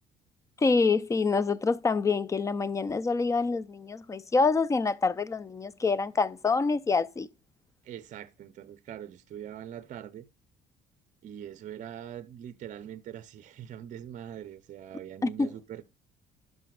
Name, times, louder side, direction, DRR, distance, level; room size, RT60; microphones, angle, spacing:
voice 1, 0.6-7.3 15.2-15.5, left 4 dB, 20° left, 0.4 m, -26 dB
voice 2, 7.8-10.3 11.2-15.9, right 10 dB, 50° right, 0.6 m, -42 dB
11.5 x 5.4 x 2.3 m
cardioid pair, 110°, 17 cm